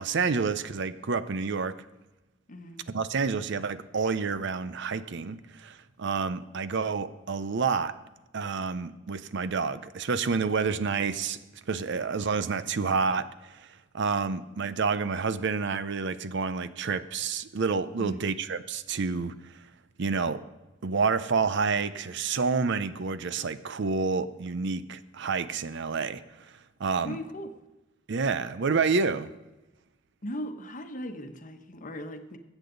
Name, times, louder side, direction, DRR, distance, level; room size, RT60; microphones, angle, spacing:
voice 1, 0.0-1.7 2.9-7.9 8.3-11.4 11.7-13.7 13.9-19.3 20.0-20.4 20.8-26.2 26.8-27.2 28.1-29.3, right 5 dB, 65° right, 14 dB, 0.6 m, -29 dB
voice 2, 2.5-2.8 18.0-18.3 27.0-27.5 30.2-32.4, equal, 45° left, 7 dB, 1.1 m, -38 dB
20.0 x 8.2 x 3.9 m, 1.1 s
head